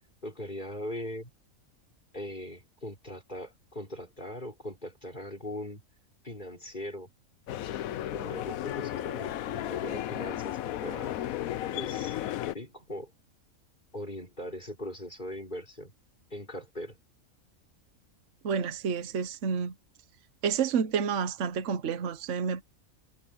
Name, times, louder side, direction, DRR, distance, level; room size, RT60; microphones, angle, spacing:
voice 1, 0.2-1.3 2.1-5.8 6.2-7.1 8.1-11.2 11.7-12.2 12.5-13.1 13.9-15.9 16.3-17.0, left 1 dB, 35° left, 5.6 m, -40 dB
sound 1, 7.5-12.5, left 12 dB, 80° left, 1.1 m, -34 dB
voice 2, 18.4-19.7 20.4-22.6, right 6 dB, 60° right, 1.3 m, -29 dB
omnidirectional pair, 1.5 m